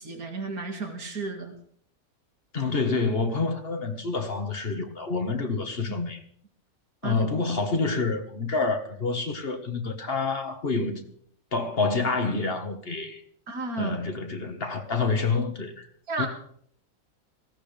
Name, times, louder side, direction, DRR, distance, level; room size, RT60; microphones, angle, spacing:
voice 1, 0.0-1.6 7.0-7.3 13.5-14.0 16.1-16.3, right 3 dB, 90° right, 2.6 m, -32 dB
voice 2, 2.5-6.2 7.0-11.1 11.5-13.2 13.8-15.9 16.2-16.3, left 4 dB, 45° left, 1.8 m, -28 dB
18.5 x 16.0 x 3.4 m
omnidirectional pair, 1.5 m